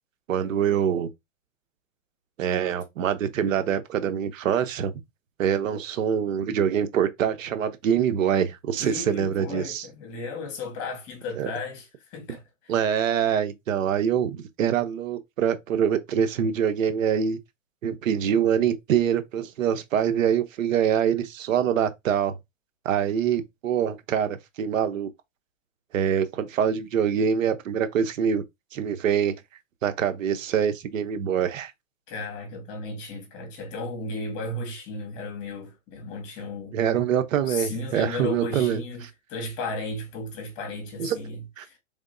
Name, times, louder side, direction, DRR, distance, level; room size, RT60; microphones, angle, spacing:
voice 1, 0.3-1.1 2.4-5.0 5.4-9.8 11.4-11.5 12.7-17.4 17.8-22.4 22.8-25.1 25.9-28.4 28.7-29.4 29.8-31.7 36.7-38.8 41.0-41.2 41.6-41.7, right 8 dB, 80° right, 0.8 m, -24 dB
voice 2, 8.8-12.7 32.1-36.8 37.5-41.8, left 3 dB, 40° left, 1.8 m, -35 dB
3.6 x 3.5 x 2.5 m
hypercardioid pair, 135°, 39 cm